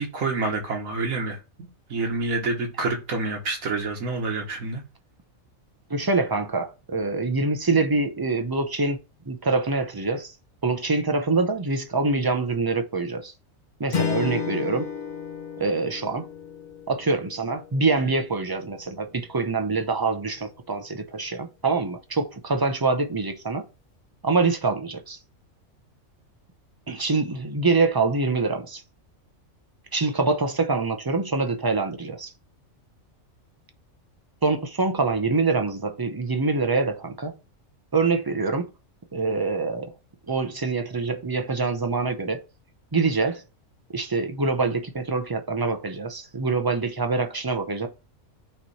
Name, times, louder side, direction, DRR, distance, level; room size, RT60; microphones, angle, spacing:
voice 1, 0.0-4.8, right 3 dB, 90° right, 1.9 m, -28 dB
voice 2, 5.9-9.0 9.3-10.3 10.6-13.3 13.8-14.9 15.6-16.3 16.9-23.6 24.2-25.2 26.9-28.8 29.9-32.3 34.4-37.3 37.9-38.7 39.1-39.9 40.3-42.4 42.9-43.4 43.9-47.9, right 3 dB, 30° right, 0.4 m, -25 dB
Strum, 13.9-18.5, left 7 dB, 40° left, 0.8 m, -32 dB
8.6 x 3.1 x 4.2 m
omnidirectional pair, 1.4 m